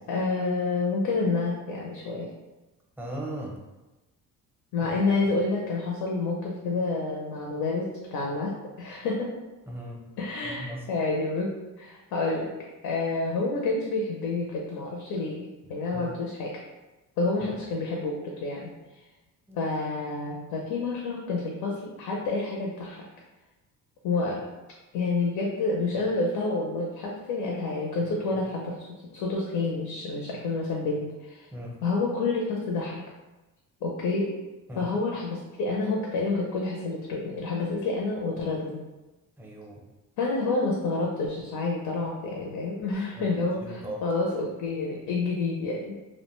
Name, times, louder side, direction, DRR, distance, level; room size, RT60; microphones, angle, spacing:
voice 1, 0.1-2.3 4.7-9.3 10.2-11.5 11.8-12.5 12.8-16.5 17.2-18.7 19.5-23.0 24.0-24.4 24.9-28.9 29.1-31.5 31.8-33.0 33.8-34.3 34.8-38.8 40.2-45.9, left 3 dB, 85° left, -2 dB, 0.5 m, -29 dB
voice 2, 3.0-3.5 4.8-4.9 9.7-10.0 10.4-10.8 15.9-16.1 17.4-17.5 19.5-19.6 31.5-31.7 34.7-34.9 39.4-39.8 43.2-43.3 43.6-44.0, right 1 dB, 5° right, -2 dB, 0.5 m, -37 dB
2.4 x 2.2 x 2.9 m, 1.1 s
cardioid pair, 115°, 35 cm